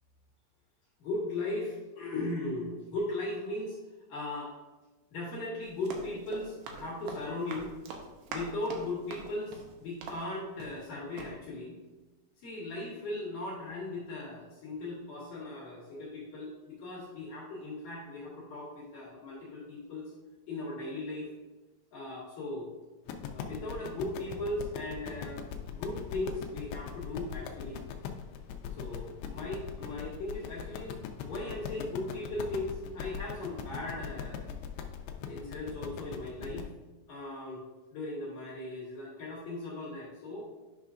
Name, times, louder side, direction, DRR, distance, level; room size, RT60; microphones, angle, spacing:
voice 1, 1.0-3.8 4.1-4.5 5.1-7.7 8.3-11.7 12.4-20.1 20.5-21.3 21.9-22.7 23.3-25.4 25.7-27.8 28.7-31.0 31.2-34.5 35.2-36.7 37.1-37.6 37.9-40.5, left 2 dB, 70° left, -5 dB, 2.1 m, -38 dB
Run, 5.6-10.9 11.2-11.3, right 4 dB, 80° right, 2.5 m, -44 dB
sound 1, 23.1-36.7, left 8 dB, 90° left, 2.5 m, -40 dB
10.0 x 5.6 x 2.5 m, 1.2 s
omnidirectional pair, 5.7 m